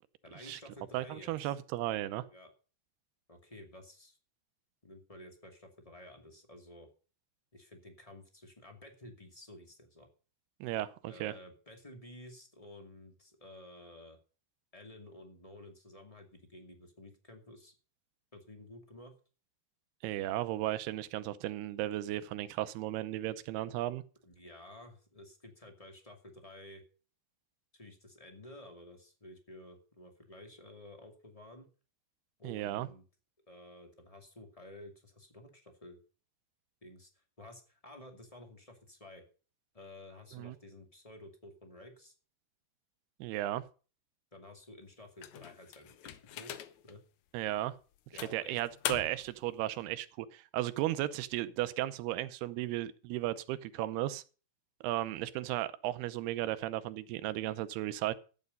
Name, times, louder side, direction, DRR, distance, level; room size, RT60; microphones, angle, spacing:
voice 1, 0.2-1.5 2.3-2.5 3.3-4.2 4.8-6.9 7.5-10.1 11.0-14.2 14.7-17.7 18.3-19.1 24.2-26.8 27.7-31.7 32.4-33.0 33.5-36.0 36.8-39.2 39.7-42.1 44.3-46.5 46.8-47.0 48.1-48.6, left 1 dB, 15° left, 1.4 m, -52 dB
voice 2, 0.9-2.3 10.6-11.3 20.0-24.0 32.4-32.9 40.3-40.6 43.2-43.6 47.3-47.8 48.3-54.2 54.8-58.1, right 14 dB, 80° right, 2.7 m, -35 dB
sound 1, 45.2-46.9 47.5-47.6 48.2-49.4, left 12 dB, 85° left, 1.6 m, -41 dB
14.0 x 9.2 x 5.3 m
omnidirectional pair, 4.6 m